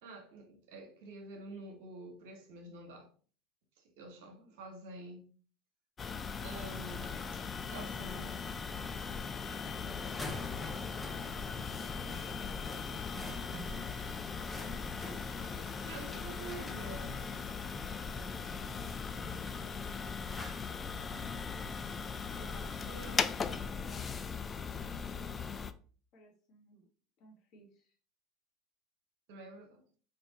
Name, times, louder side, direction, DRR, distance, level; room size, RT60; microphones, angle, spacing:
voice 1, 0.0-3.1 3.8-5.3 6.4-7.2 7.6-8.3 15.8-17.3 22.4-23.3 29.3-29.8, right 2 dB, 75° right, 1.0 m, -48 dB
sound 1, 6.0-25.7, left 5 dB, 30° left, 0.3 m, -39 dB
Printer, 6.7-22.5, right 6 dB, 50° right, 0.6 m, -57 dB
voice 2, 8.0-8.9 15.5-16.8 22.3-22.9 23.1-25.6 26.1-26.9 27.2-28.0, left 1 dB, 55° left, 1.3 m, -59 dB
sound 2, 9.3-23.9, left 1 dB, 10° left, 0.8 m, -50 dB
3.5 x 2.6 x 3.9 m
hypercardioid pair, 85°, 0 cm